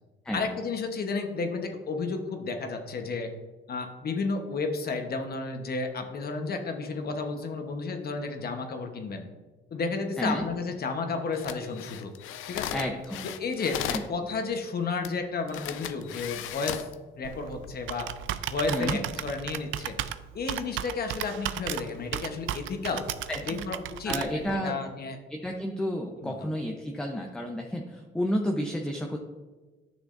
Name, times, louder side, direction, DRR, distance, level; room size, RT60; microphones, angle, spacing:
voice 1, 0.3-3.3 3.7-9.3 9.7-12.1 12.5-12.8 13.4-13.8 14.1-16.8 17.2-18.1 18.5-20.0 20.3-23.0 23.4-25.2 26.2-26.3, left 4 dB, 50° left, 5 dB, 1.1 m, -32 dB
sound 1, 11.3-14.1 15.0-15.1 15.5-16.9 17.5-17.7, left 11 dB, 85° left, 0.5 m, -36 dB
voice 2, 12.7-13.3 13.9-14.0 18.7-19.0 23.3-23.6 24.1-24.8 25.3-29.2, equal, 5° left, 1 dB, 0.7 m, -31 dB
Computer keyboard, 17.2-24.5, right 12 dB, 80° right, 0.4 m, -35 dB
10.5 x 6.3 x 2.6 m, 1.2 s
cardioid pair, 90°, 20 cm